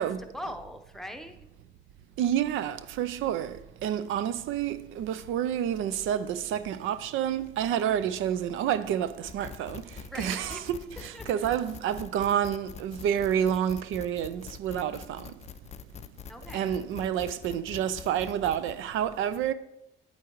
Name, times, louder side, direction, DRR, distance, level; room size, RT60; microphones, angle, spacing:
voice 1, 0.3-1.4 10.1-10.6 11.1-11.5 16.3-16.8, equal, ahead, 0.8 m, -41 dB
voice 2, 2.2-9.8 10.1-15.3 16.5-19.5, right 9 dB, 85° right, 0.5 m, -29 dB
sound 1, 9.3-18.8, left 8 dB, 35° left, 0.4 m, -45 dB
8.4 x 8.4 x 3.0 m
cardioid pair, 90°, 20 cm